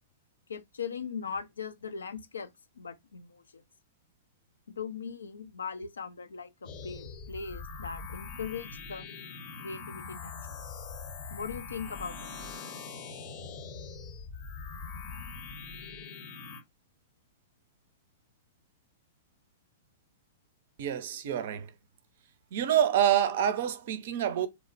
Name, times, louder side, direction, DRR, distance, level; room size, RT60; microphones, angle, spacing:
voice 1, 0.5-2.5 2.8-3.6 4.7-9.0 9.6-10.6 11.3-12.3, left 6 dB, 80° left, 0.4 m, -39 dB
sound 1, 6.6-16.6, left 4 dB, 45° left, 0.7 m, -42 dB
voice 2, 20.8-21.7 22.5-24.5, right 10 dB, 60° right, 0.4 m, -27 dB
2.9 x 2.1 x 2.4 m
hypercardioid pair, 110°, 0 cm